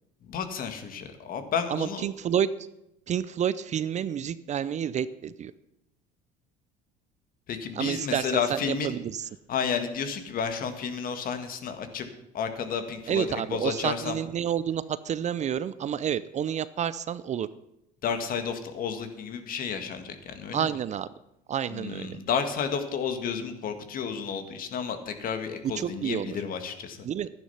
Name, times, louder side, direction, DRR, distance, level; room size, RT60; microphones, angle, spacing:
voice 1, 0.2-2.1 7.5-9.0 9.5-12.1 12.3-14.2 18.0-20.7 21.7-27.1, left 6 dB, 50° left, 8 dB, 1.8 m, -31 dB
voice 2, 1.7-2.5 3.1-5.5 7.8-9.3 13.1-17.5 20.5-21.1 21.5-22.2 25.8-26.4 27.0-27.3, right 9 dB, 40° right, 16 dB, 0.6 m, -29 dB
12.0 x 10.0 x 5.7 m, 0.85 s
supercardioid pair, 90°, 19 cm